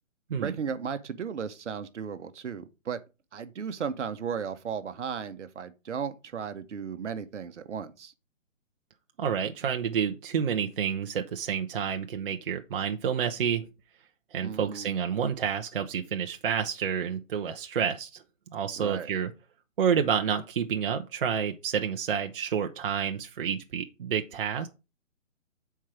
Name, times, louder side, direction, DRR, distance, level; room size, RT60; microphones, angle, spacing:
voice 1, 0.4-3.0 3.3-8.1 14.4-14.9 18.7-19.1, right 7 dB, 65° right, 1.0 m, -35 dB
voice 2, 9.2-13.7 14.3-18.2 18.5-19.3 19.8-24.7, right 7 dB, 45° right, 0.7 m, -29 dB
7.4 x 4.6 x 4.8 m
hypercardioid pair, 150°, 38 cm